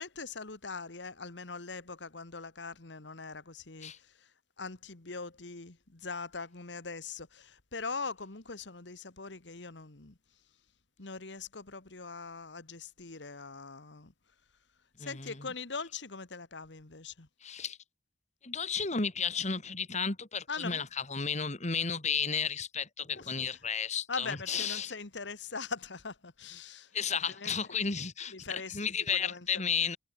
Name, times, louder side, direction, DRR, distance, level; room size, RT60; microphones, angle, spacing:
voice 1, 0.0-4.3 4.6-10.2 11.0-14.1 15.0-17.3 20.5-20.8 23.1-23.3 24.1-27.5 28.3-28.8 29.1-29.5, left 4 dB, 70° left, 1.7 m, -41 dB
voice 2, 15.0-15.5 17.4-17.8 18.4-24.9 26.9-30.0, left 6 dB, 40° left, 2.4 m, -33 dB
head